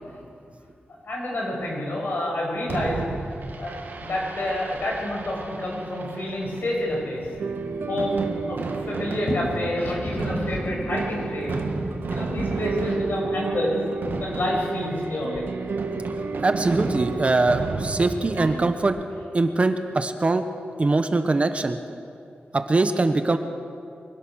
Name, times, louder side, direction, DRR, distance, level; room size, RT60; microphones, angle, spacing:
voice 1, 1.0-3.0 3.6-7.3 7.6-8.6 8.9-11.7 12.1-13.8 14.2-15.4 18.5-18.6, left 1 dB, 65° left, -2 dB, 7.0 m, -28 dB
Fireworks, 2.7-18.8, right 3 dB, 70° right, 2.1 m, -34 dB
sound 1, 7.4-18.7, right 4 dB, 85° right, 1.5 m, -33 dB
voice 2, 16.4-19.0 19.3-20.4 20.8-21.8 22.5-23.4, right 3 dB, 35° right, 8 dB, 1.2 m, -22 dB
24.0 x 17.5 x 6.4 m, 2.4 s
wide cardioid pair, 100°, 4 cm